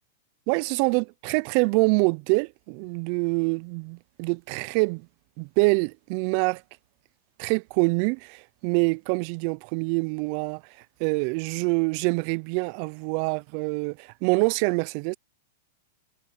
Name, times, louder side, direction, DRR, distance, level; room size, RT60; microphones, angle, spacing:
voice 1, 0.5-5.1 5.4-6.6 7.4-15.2, right 31 dB, 40° right, 0.3 m, -25 dB
supercardioid pair, 160°, 0 cm